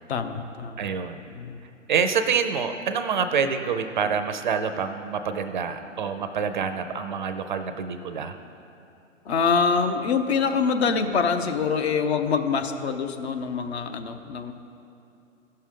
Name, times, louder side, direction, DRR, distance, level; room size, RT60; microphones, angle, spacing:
voice 1, 0.1-0.9 1.3-1.6 9.2-14.5, left 5 dB, 55° left, 7 dB, 0.8 m, -25 dB
voice 2, 0.8-1.2 1.9-8.4, right 6 dB, 40° right, 8 dB, 0.5 m, -26 dB
16.0 x 6.6 x 3.7 m, 2.7 s
hypercardioid pair, 135°, 39 cm